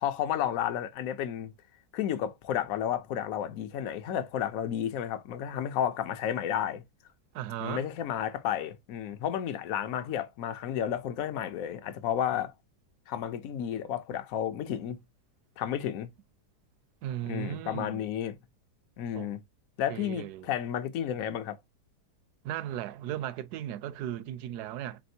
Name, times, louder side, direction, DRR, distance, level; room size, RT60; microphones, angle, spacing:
voice 1, 0.0-1.5 1.9-6.8 7.6-12.5 13.1-15.0 15.6-16.1 17.3-18.4 19.0-19.4 19.8-21.6, left 10 dB, 65° left, 1.0 m, -32 dB
voice 2, 7.3-7.9 17.0-18.0 19.1-19.3 19.9-20.5 22.4-25.0, right 12 dB, 75° right, 1.1 m, -36 dB
4.2 x 3.4 x 2.7 m
omnidirectional pair, 1.8 m